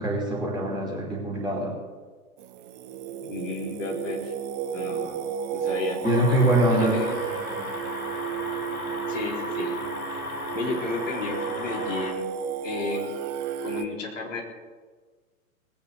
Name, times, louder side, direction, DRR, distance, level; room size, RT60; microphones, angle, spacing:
voice 1, 0.0-1.8 6.0-7.0 7.2-7.7, right 1 dB, ahead, -2 dB, 2.6 m, -24 dB
Singing, 2.4-13.9, right 8 dB, 25° right, 0.8 m, -33 dB
voice 2, 3.2-4.3 4.7-5.3 5.5-6.0 6.7-7.1 9.1-9.8 10.0-10.2 10.5-12.3 12.6-13.1 13.6-14.4, left 3 dB, 60° left, -1 dB, 4.3 m, -33 dB
sound 1, 6.0-12.1, left 2 dB, 80° left, 2.2 m, -35 dB
19.5 x 8.6 x 6.8 m, 1.4 s
figure-of-eight pair, 110°, 43 cm